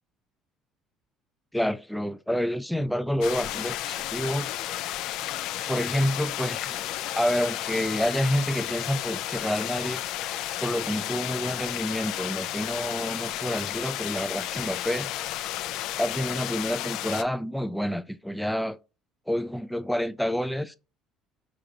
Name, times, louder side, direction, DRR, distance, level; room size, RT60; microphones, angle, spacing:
voice 1, 1.5-4.5 5.7-6.8 7.2-10.0 10.6-15.1 16.0-18.8 19.3-20.8, equal, ahead, 0.4 m, -28 dB
sound 1, 3.2-17.2, left 13 dB, 75° left, 0.4 m, -32 dB
5.0 x 3.8 x 2.8 m
cardioid pair, 135°, 0 cm